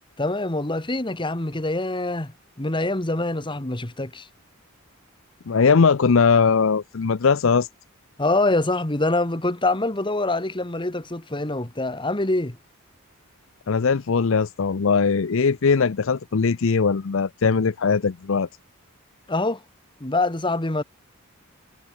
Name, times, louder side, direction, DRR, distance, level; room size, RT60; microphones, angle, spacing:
voice 1, 0.2-4.3 8.2-12.6 19.3-19.6 20.0-20.8, left 2 dB, 25° left, 1.7 m, -25 dB
voice 2, 5.5-7.7 13.7-18.5, left 5 dB, 65° left, 0.6 m, -20 dB
head